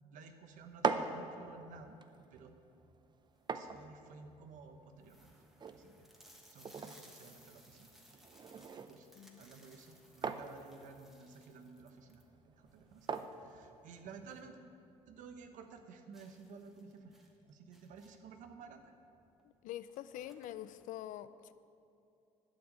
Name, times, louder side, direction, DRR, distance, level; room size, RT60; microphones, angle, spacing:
voice 1, 0.1-2.0 2.3-2.5 3.5-5.3 5.7-6.1 6.5-8.2 8.9-9.1 9.4-14.6 15.1-18.9, right 5 dB, 75° right, 7 dB, 1.1 m, -54 dB
sound 1, 0.6-14.4, right 5 dB, 35° right, 0.6 m, -44 dB
sound 2, 3.4-3.7 4.3-4.4 4.6-4.7 5.0-14.6 14.9-15.0 15.4-15.5 16.1-18.4 19.3-19.4 19.7-20.9, equal, 5° right, 1.4 m, -63 dB
voice 2, 19.4-21.5, left 12 dB, 75° left, 14 dB, 0.5 m, -45 dB
11.5 x 6.1 x 8.7 m, 2.6 s
cardioid pair, 100°, 13 cm